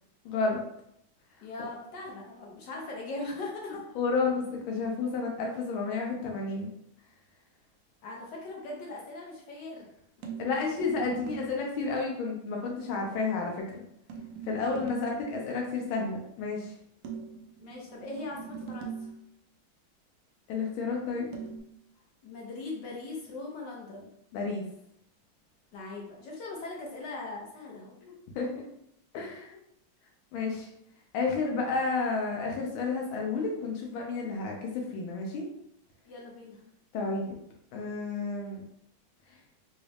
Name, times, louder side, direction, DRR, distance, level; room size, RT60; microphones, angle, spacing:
voice 1, 0.2-0.6 3.9-6.7 10.4-13.8 14.5-16.7 20.5-21.3 24.3-24.6 28.0-28.6 29.1-29.6 30.3-30.7 31.1-35.5 36.9-37.4 37.7-38.6, left 4 dB, 85° left, 0 dB, 1.4 m, -31 dB
voice 2, 1.4-3.9 8.0-9.9 10.4-10.7 14.6-14.8 17.6-19.1 22.2-24.1 25.7-27.9 36.0-36.6, left 2 dB, 65° left, -2 dB, 1.3 m, -40 dB
sound 1, 10.2-11.6 14.1-15.3 17.0-19.3 21.3-21.6, right 6 dB, 85° right, 0.8 m, -41 dB
4.0 x 2.3 x 3.2 m, 0.75 s
omnidirectional pair, 2.2 m